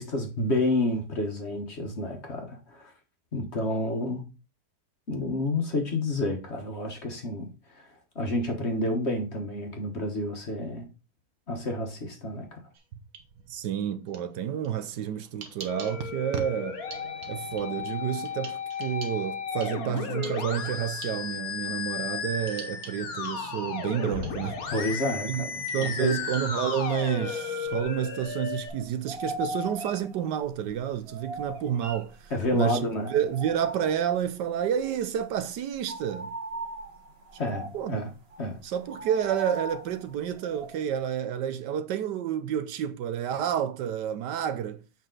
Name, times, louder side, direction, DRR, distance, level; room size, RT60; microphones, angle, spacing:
voice 1, 0.0-2.9 3.3-4.2 5.1-7.5 8.1-10.8 11.5-12.6 24.7-26.1 32.3-33.1 37.4-38.1 38.4-38.6, left 1 dB, 40° left, 1.4 m, -29 dB
sound 1, 12.7-13.7 14.1-27.8, right 6 dB, 55° right, 1.5 m, -45 dB
voice 2, 13.5-16.8 17.3-24.7 25.3-25.5 25.7-36.4 37.7-38.0 38.6-44.8, right 9 dB, 75° right, 1.3 m, -30 dB
Musical instrument, 15.7-28.7, left 6 dB, 55° left, 1.6 m, -34 dB
sound 2, 27.7-28.4 28.7-32.6 33.0-34.3 34.7-34.9 35.2-41.0, right 1 dB, 35° right, 1.5 m, -39 dB
7.2 x 5.4 x 3.8 m
omnidirectional pair, 1.9 m